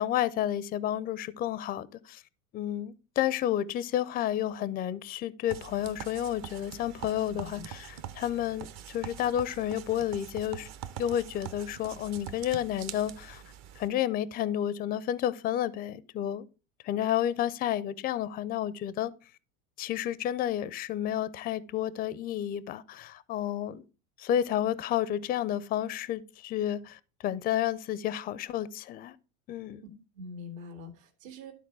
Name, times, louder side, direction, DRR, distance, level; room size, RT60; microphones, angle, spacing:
voice 1, 0.0-2.2 2.5-10.7 11.0-13.4 13.8-16.4 16.8-19.1 19.8-23.8 24.2-29.2 29.5-29.8, left 11 dB, 25° left, 0.4 m, -31 dB
sound 1, 5.5-13.9, right 10 dB, 40° right, 0.7 m, -44 dB
voice 2, 7.3-7.7 30.1-31.5, left 3 dB, 70° right, 2.1 m, -44 dB
12.0 x 4.1 x 4.6 m
supercardioid pair, 115°, 41 cm